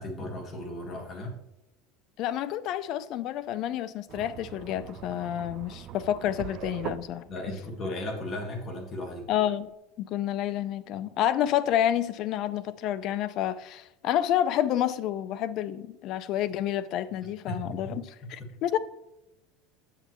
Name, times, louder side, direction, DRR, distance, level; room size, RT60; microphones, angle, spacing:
voice 1, 0.0-1.4 7.3-9.3 17.5-18.0 18.4-18.5, left 1 dB, 25° left, 1.6 m, -36 dB
voice 2, 2.2-7.2 9.3-9.7 10.0-18.8, left 11 dB, 45° left, 0.5 m, -29 dB
sound 1, 4.1-9.7, right 10 dB, 40° right, 0.4 m, -43 dB
8.2 x 6.8 x 3.0 m
cardioid pair, 160°, 0 cm